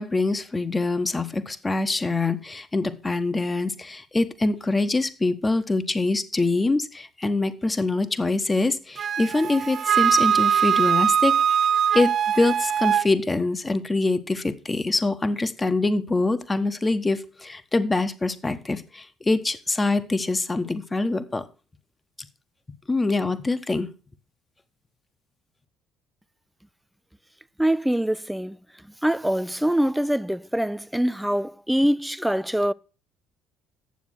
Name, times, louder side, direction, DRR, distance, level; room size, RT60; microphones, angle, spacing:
voice 1, 0.0-11.4 11.9-12.1 12.4-21.4 22.9-23.9, left 2 dB, 20° left, 1.2 m, -24 dB
Wind instrument woodwind instrument, 9.0-13.1, right 8 dB, 50° right, 0.4 m, -21 dB
voice 2, 27.6-28.6 29.0-32.7, right 1 dB, 5° right, 0.5 m, -24 dB
9.5 x 7.2 x 6.4 m
supercardioid pair, 75°, 0 cm